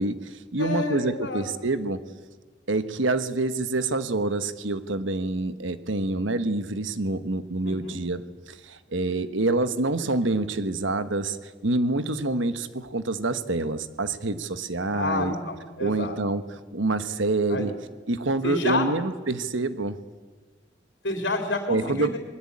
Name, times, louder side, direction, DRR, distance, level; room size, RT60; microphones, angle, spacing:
voice 1, 0.0-2.0 2.7-15.3 15.8-16.4 16.7-17.7 18.1-19.9 21.7-22.1, right 2 dB, 90° right, 11 dB, 1.3 m, -27 dB
voice 2, 0.6-1.4 7.7-8.0 14.9-16.2 17.0-17.2 17.5-17.7 18.4-18.9 21.0-22.2, left 3 dB, 70° left, 4 dB, 3.6 m, -29 dB
28.0 x 21.5 x 8.7 m, 1.3 s
head